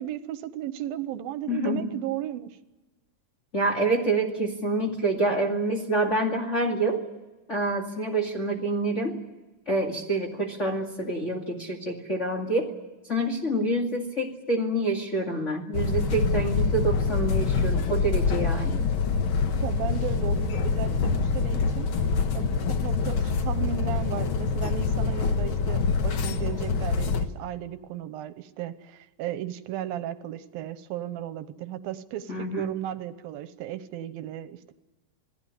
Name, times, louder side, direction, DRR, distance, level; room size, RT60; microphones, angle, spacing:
voice 1, 0.0-2.6 19.6-21.9 22.3-34.7, right 11 dB, 85° right, 12 dB, 2.8 m, -35 dB
voice 2, 1.5-1.9 3.5-7.0 7.5-9.1 9.7-12.7 13.1-18.8 32.3-32.7, right 2 dB, 25° left, -1 dB, 1.9 m, -27 dB
sound 1, 15.7-27.3, left 5 dB, 60° left, 1.3 m, -25 dB
28.0 x 18.5 x 8.3 m, 1.1 s
omnidirectional pair, 4.1 m